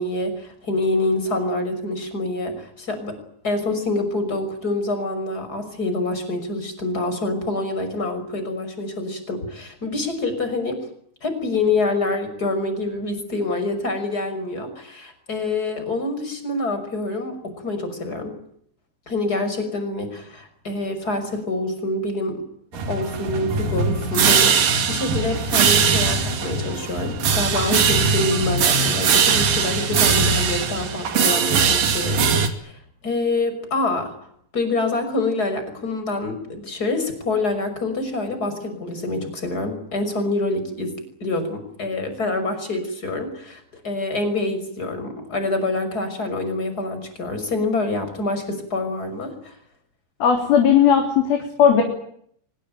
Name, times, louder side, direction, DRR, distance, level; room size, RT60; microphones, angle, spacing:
voice 1, 0.0-3.2 3.4-10.8 11.2-18.4 19.1-22.4 22.9-34.1 34.5-40.9 41.2-49.5, left 2 dB, 20° left, 8 dB, 6.1 m, -26 dB
sound 1, 22.7-32.5, right 5 dB, 55° right, 3.7 m, -20 dB
voice 2, 50.2-51.8, left 8 dB, 60° left, 3 dB, 5.1 m, -16 dB
24.5 x 21.0 x 9.1 m, 0.67 s
omnidirectional pair, 5.0 m